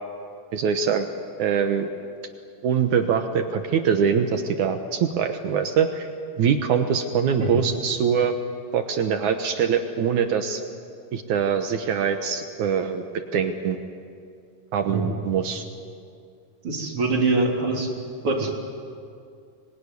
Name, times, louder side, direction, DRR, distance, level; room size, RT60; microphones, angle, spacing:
voice 1, 0.5-1.1 1.4-1.9 2.6-6.1 6.4-8.3 8.7-10.6 11.1-13.0 13.3-13.8 14.7-15.6, right 7 dB, 65° right, 6 dB, 2.3 m, -23 dB
voice 2, 7.4-7.7 14.9-15.2 16.6-17.9 18.2-18.5, right 3 dB, 40° right, -1 dB, 4.0 m, -24 dB
26.5 x 22.0 x 9.7 m, 2.4 s
omnidirectional pair, 4.1 m